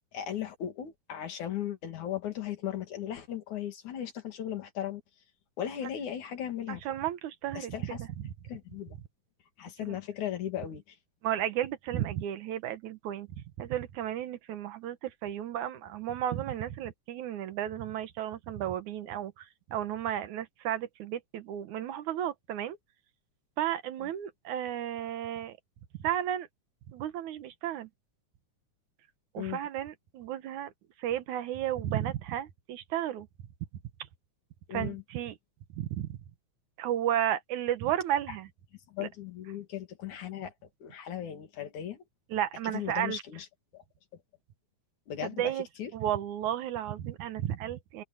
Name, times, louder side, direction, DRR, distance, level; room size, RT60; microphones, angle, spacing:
voice 1, 0.1-5.0 5.6-6.8 7.6-8.0 8.4-9.0 9.6-11.0 29.4-29.6 34.7-35.0 38.9-40.5 40.8-42.0 42.7-43.5 43.7-43.8 45.1-45.5 45.8-45.9, left 10 dB, 70° left, 3.8 m, -37 dB
voice 2, 6.7-8.3 9.8-10.0 11.2-22.8 23.6-25.6 26.0-26.5 26.9-27.9 29.3-30.7 31.0-33.3 34.7-35.3 35.8-36.2 36.8-38.5 39.0-39.1 42.3-43.2 45.2-45.7 45.9-48.0, right 11 dB, 75° right, 2.5 m, -33 dB
omnidirectional pair, 3.5 m